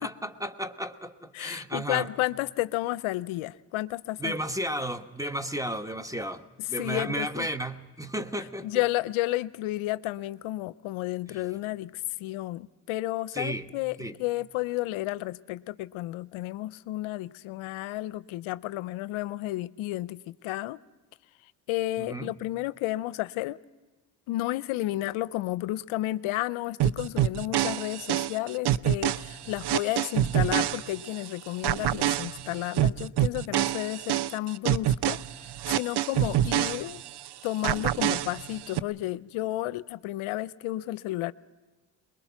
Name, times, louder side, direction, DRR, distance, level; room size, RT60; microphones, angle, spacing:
voice 1, 0.0-2.1 4.2-8.7 13.3-13.6 14.0-14.1 22.0-22.3, right 1 dB, 5° right, 1.2 m, -33 dB
voice 2, 1.3-4.4 6.6-7.5 8.6-20.8 21.4-23.6 24.3-37.0 37.4-41.3, left 17 dB, 70° left, 0.6 m, -32 dB
sound 1, 26.8-31.3 31.6-37.3 37.6-38.8, right 12 dB, 50° right, 0.7 m, -27 dB
23.5 x 21.0 x 5.9 m
hypercardioid pair, 50°, 50 cm